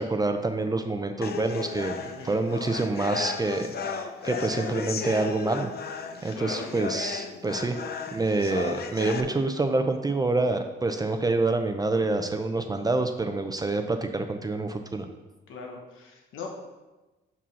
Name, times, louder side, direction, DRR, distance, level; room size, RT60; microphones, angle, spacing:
voice 1, 0.0-1.9 2.2-5.7 6.2-7.8 8.1-15.1, right 2 dB, 20° right, 6 dB, 0.5 m, -27 dB
sound 1, 1.2-9.2, left 6 dB, 50° left, 0.6 m, -35 dB
voice 2, 2.0-2.4 6.3-6.8 15.5-16.5, left 4 dB, 80° left, 1 dB, 1.1 m, -40 dB
5.5 x 5.1 x 5.5 m, 1.1 s
cardioid pair, 90°, 20 cm